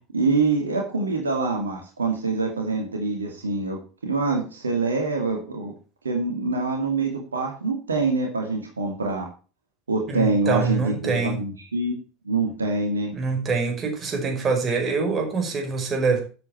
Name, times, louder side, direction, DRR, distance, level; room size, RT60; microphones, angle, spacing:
voice 1, 0.1-5.7 6.0-9.3 9.9-12.0 12.2-13.1, right 3 dB, 85° right, 2 dB, 2.5 m, -25 dB
voice 2, 10.1-11.4 13.1-16.2, right 4 dB, 30° right, 3 dB, 5.4 m, -25 dB
12.0 x 8.2 x 4.6 m, 0.36 s
figure-of-eight pair, 75°, 0 cm